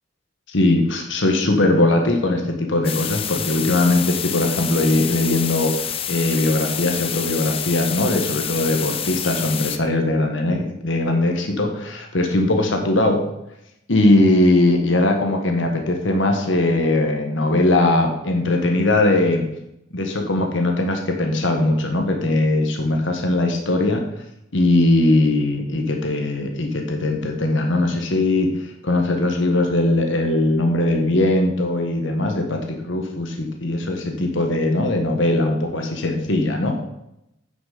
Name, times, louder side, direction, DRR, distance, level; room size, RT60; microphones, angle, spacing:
voice 1, 0.5-13.3 13.9-19.4 19.9-24.0 24.5-36.7, left 2 dB, 65° left, 3 dB, 1.3 m, -20 dB
sound 1, 2.8-9.8, left 9 dB, 30° left, 0.5 m, -28 dB
9.5 x 6.1 x 5.0 m, 0.83 s
head